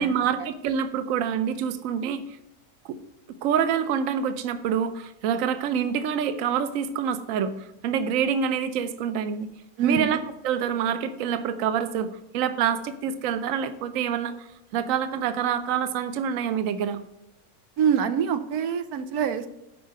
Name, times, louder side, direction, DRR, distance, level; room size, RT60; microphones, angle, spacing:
voice 1, 0.0-2.2 2.8-3.0 3.4-9.5 9.8-14.5 14.7-17.0, right 8 dB, 65° right, 11 dB, 1.0 m, -26 dB
voice 2, 9.8-10.1 17.8-19.5, right 7 dB, 85° right, 10 dB, 1.2 m, -25 dB
8.3 x 5.7 x 7.5 m, 0.88 s
omnidirectional pair, 1.6 m